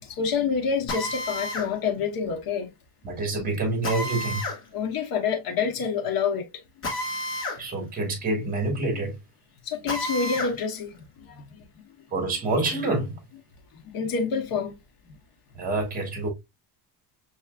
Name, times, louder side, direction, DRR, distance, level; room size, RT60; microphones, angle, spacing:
voice 1, 0.0-2.7 4.7-6.5 9.7-11.6 13.8-14.7, left 6 dB, 55° left, 1.1 m, -27 dB
Drill, 0.9-1.7 3.8-4.6 6.8-7.6 8.0-8.1 9.9-10.5, left 1 dB, 30° left, 1.5 m, -30 dB
voice 2, 3.0-4.5 7.6-9.2 12.1-13.1 15.5-16.3, right 2 dB, 20° right, 1.7 m, -27 dB
5.7 x 3.0 x 2.3 m
cardioid pair, 160°, 42 cm